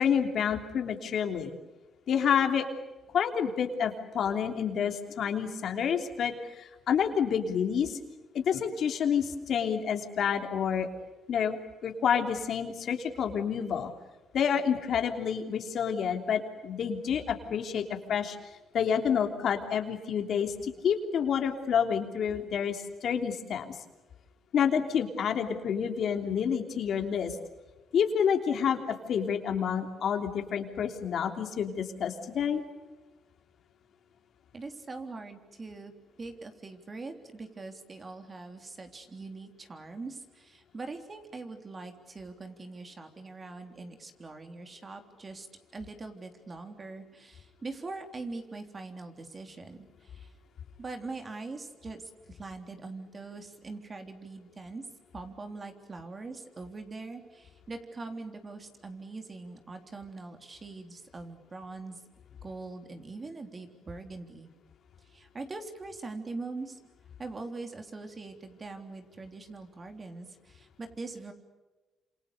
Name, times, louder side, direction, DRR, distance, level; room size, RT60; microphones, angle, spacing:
voice 1, 0.0-1.5 2.1-2.7 3.1-8.0 8.3-10.9 11.3-11.6 11.8-13.9 14.3-17.8 18.1-18.4 18.7-23.8 24.5-27.4 27.9-32.6, left 7 dB, 65° left, 5 dB, 3.2 m, -28 dB
voice 2, 34.5-35.9 36.2-45.5 45.7-50.3 50.8-54.8 55.1-62.0 62.4-64.5 65.0-66.8 67.2-71.3, right 3 dB, 30° right, 6 dB, 3.6 m, -42 dB
28.0 x 27.0 x 6.8 m, 1.2 s
cardioid pair, 90°, 0 cm